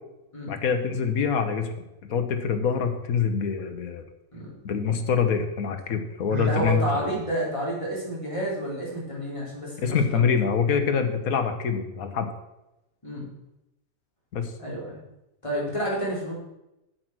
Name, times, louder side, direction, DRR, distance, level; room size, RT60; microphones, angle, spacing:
voice 1, 0.5-1.7 2.1-4.0 4.6-7.1 9.8-12.3 14.3-14.5, left 6 dB, 80° left, 7 dB, 1.5 m, -25 dB
Sigh, 6.3-6.8, right 8 dB, 50° right, 0.5 m, -33 dB
voice 2, 6.4-10.2 13.0-13.3 14.6-15.0 15.4-16.3, right 1 dB, 20° left, -6 dB, 4.0 m, -30 dB
8.4 x 8.0 x 6.1 m, 0.91 s
omnidirectional pair, 1.5 m